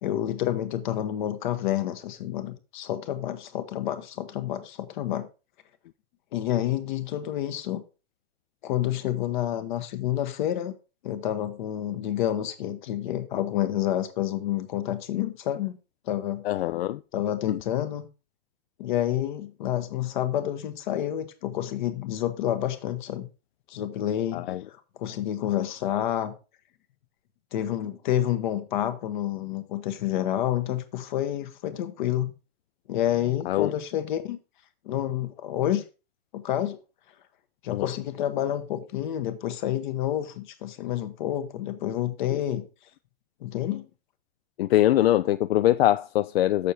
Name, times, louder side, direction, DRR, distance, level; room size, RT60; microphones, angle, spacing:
voice 1, 0.0-5.3 6.3-7.8 8.6-10.7 11.0-15.7 16.1-16.4 17.1-18.1 18.8-23.3 23.7-24.5 25.0-26.3 27.5-32.3 32.9-34.4 34.8-35.8 36.3-36.8 37.6-42.6 43.4-43.8, left 12 dB, 50° left, 1.2 m, -29 dB
voice 2, 16.4-17.0 17.5-17.6 24.3-24.6 33.5-33.7 37.7-37.9 44.6-46.7, left 13 dB, 75° left, 0.4 m, -23 dB
6.9 x 6.6 x 4.3 m
hypercardioid pair, 145°, 31 cm